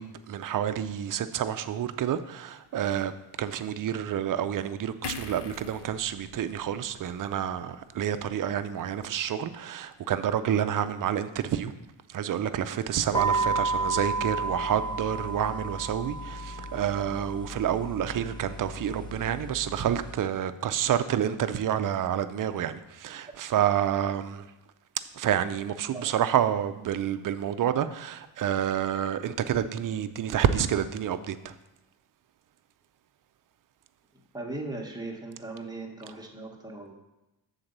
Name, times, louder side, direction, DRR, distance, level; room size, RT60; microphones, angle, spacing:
voice 1, 0.0-3.1 3.4-11.7 12.1-24.5 25.2-31.5, right 9 dB, 45° right, 11 dB, 0.5 m, -29 dB
sound 1, 5.0-8.4 8.7-8.9, left 6 dB, 65° left, 0.6 m, -44 dB
sound 2, 13.1-20.1, right 3 dB, 10° left, 0.4 m, -32 dB
voice 2, 34.3-36.9, right 2 dB, 10° right, 0 dB, 1.0 m, -38 dB
7.4 x 4.0 x 6.6 m, 0.99 s
wide cardioid pair, 145°, 45 cm